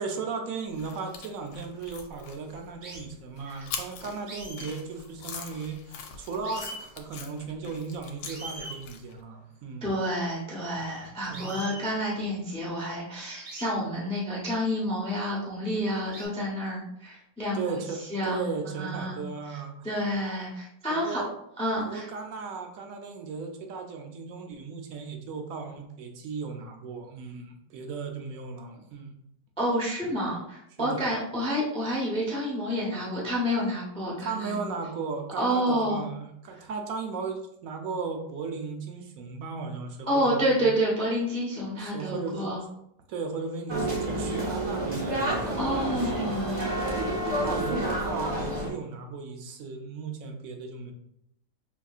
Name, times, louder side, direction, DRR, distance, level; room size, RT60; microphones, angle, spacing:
voice 1, 0.0-9.9 11.3-11.7 17.5-19.9 20.9-21.3 21.8-29.1 30.8-31.0 34.2-40.7 41.8-42.7 43.1-46.3 47.3-50.9, right 4 dB, 70° right, 4 dB, 0.8 m, -36 dB
sound 1, 0.7-9.2, left 6 dB, 90° left, 1.3 m, -43 dB
sound 2, 1.9-2.2 2.8-3.1 4.2-5.8 6.1-6.2 6.4-6.8 7.9-8.0 8.2-8.8 11.3-11.9 13.4-13.7 14.8-14.9 16.1-16.3, right 1 dB, 85° right, 2.4 m, -42 dB
voice 2, 9.8-17.6 18.1-19.2 19.8-21.2 21.6-22.1 29.6-34.6 35.4-36.0 40.1-42.6 45.6-46.7, equal, 5° left, -4 dB, 0.4 m, -29 dB
sound 3, 43.7-48.7, right 1 dB, 35° right, 0.7 m, -29 dB
5.7 x 2.6 x 2.4 m, 0.76 s
omnidirectional pair, 2.0 m